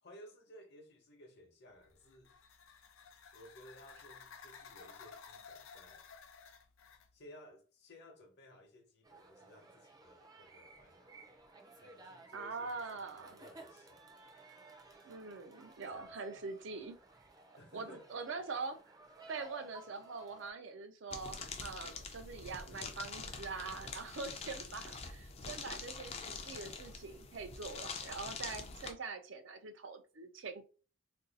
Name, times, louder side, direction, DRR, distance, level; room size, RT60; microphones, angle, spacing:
voice 1, 0.0-2.4 3.3-6.1 7.1-11.3 11.8-14.1 15.9-16.4 17.6-18.1, left 1 dB, 60° left, 0.9 m, -58 dB
sound 1, 1.8-7.1, left 6 dB, 90° left, 0.4 m, -55 dB
sound 2, 9.0-20.5, right 3 dB, 20° right, 0.5 m, -57 dB
voice 2, 12.3-13.4 15.0-17.0 17.7-19.0 19.3-30.6, right 4 dB, 70° right, 0.5 m, -44 dB
sound 3, 21.1-28.9, left 4 dB, 30° left, 0.5 m, -45 dB
2.6 x 2.3 x 3.9 m
head